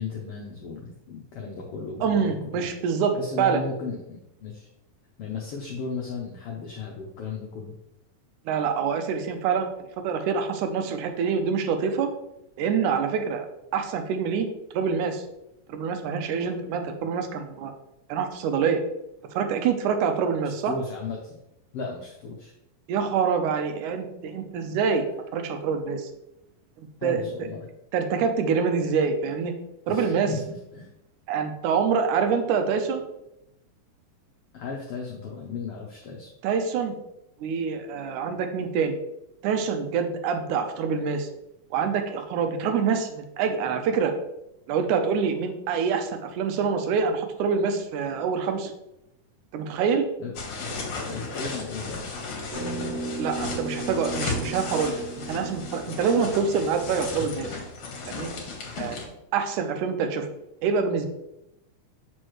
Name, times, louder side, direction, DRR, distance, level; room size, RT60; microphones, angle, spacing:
voice 1, 0.0-2.7 3.1-4.7 5.2-7.7 20.6-21.4 21.7-22.5 27.0-27.7 29.9-30.9 34.5-36.3 50.2-50.3 51.1-52.2, left 4 dB, 80° left, 0 dB, 1.3 m, -35 dB
voice 2, 2.0-3.6 8.5-9.7 10.0-12.1 12.6-13.5 13.7-14.5 14.7-15.2 15.7-17.7 18.1-18.8 19.4-20.7 22.9-25.1 25.3-26.1 26.8-27.2 27.9-29.5 29.9-30.3 31.3-33.0 36.4-36.9 37.4-39.0 39.4-41.3 41.7-44.1 44.7-48.7 49.5-50.0 53.2-55.0 55.3-57.6 58.1-58.3 58.8-59.0 59.3-60.3 60.6-61.1, right 6 dB, 90° right, 6 dB, 2.1 m, -26 dB
sound 1, 50.4-59.1, left 3 dB, 60° left, 2.0 m, -35 dB
sound 2, 52.5-57.2, right 2 dB, 65° right, 0.8 m, -36 dB
6.4 x 5.1 x 3.0 m, 0.87 s
omnidirectional pair, 3.6 m